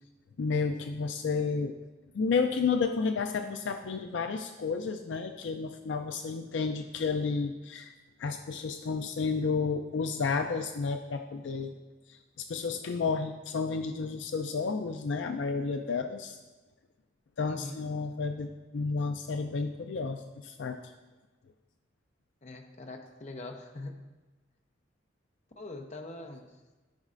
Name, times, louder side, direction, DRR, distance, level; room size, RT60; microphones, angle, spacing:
voice 1, 0.4-1.8 2.1-7.9 8.2-11.7 12.1-16.4 17.4-20.9, left 4 dB, 70° left, 6 dB, 0.4 m, -31 dB
voice 2, 17.5-17.8 22.4-23.9 25.6-26.5, left 2 dB, 40° left, 4 dB, 0.7 m, -42 dB
13.0 x 5.4 x 2.5 m, 1.2 s
head